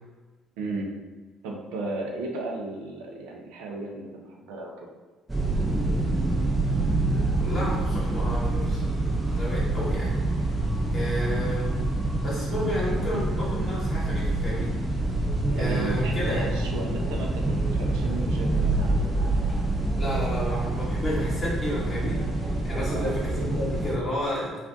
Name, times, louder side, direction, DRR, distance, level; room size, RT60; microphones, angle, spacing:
voice 1, 0.6-0.9 1.4-4.9 11.3-11.5 15.5-19.3 22.9-23.1 23.4-23.6, right 2 dB, 75° right, 0 dB, 0.5 m, -35 dB
sound 1, 5.3-24.0, right 2 dB, 15° right, 0.7 m, -26 dB
voice 2, 7.4-10.4 10.9-11.8 12.2-15.0 15.5-16.5 20.0-22.2 22.6-24.6, equal, 40° left, -8 dB, 1.1 m, -31 dB
sound 2, 14.9-21.7, left 1 dB, 5° left, 1.1 m, -42 dB
2.4 x 2.2 x 3.6 m, 1.3 s
hypercardioid pair, 55°, 0 cm